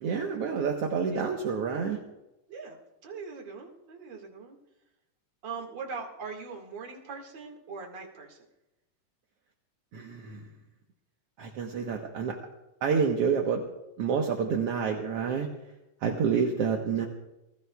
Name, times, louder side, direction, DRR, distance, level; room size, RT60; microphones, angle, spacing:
voice 1, 0.0-2.0 9.9-10.4 11.4-12.4 12.8-13.6 14.0-15.5 16.0-17.1, right 6 dB, 65° right, 1 dB, 1.6 m, -28 dB
voice 2, 3.0-4.6 5.4-8.4, right 5 dB, 40° right, 1 dB, 2.1 m, -41 dB
29.5 x 16.0 x 2.3 m, 0.96 s
omnidirectional pair, 3.9 m